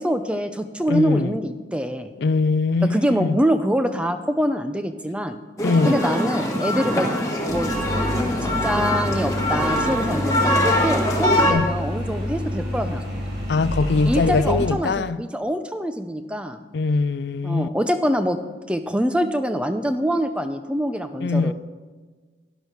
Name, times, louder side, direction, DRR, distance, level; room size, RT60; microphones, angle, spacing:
voice 1, 0.0-2.1 2.8-5.4 5.8-7.1 7.4-7.7 8.4-13.0 14.0-16.6 17.4-18.4 18.7-21.5, equal, 5° right, 0.6 m, -24 dB
voice 2, 0.9-1.4 2.2-3.4 5.6-6.0 11.4-11.8 13.5-15.2 16.7-17.7 21.2-21.5, left 4 dB, 70° left, 0.4 m, -22 dB
sound 1, 5.6-11.5, left 1 dB, 20° left, 1.6 m, -23 dB
sound 2, 7.5-14.7, left 1 dB, 60° right, 4.6 m, -28 dB
12.5 x 11.0 x 4.6 m
head